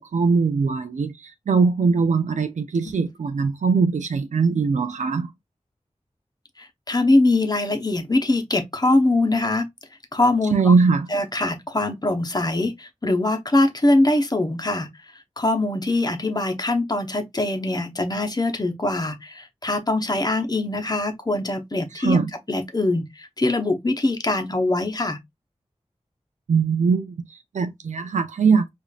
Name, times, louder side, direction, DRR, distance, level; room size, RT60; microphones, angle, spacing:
voice 1, 0.0-5.3 10.5-11.1 21.9-22.3 26.5-28.7, right 5 dB, 90° right, 0.4 m, -21 dB
voice 2, 6.6-9.7 10.1-10.7 11.1-14.9 15.4-22.2 22.5-25.2, left 2 dB, 35° left, 0.8 m, -22 dB
4.9 x 2.5 x 2.3 m
wide cardioid pair, 60°, 12 cm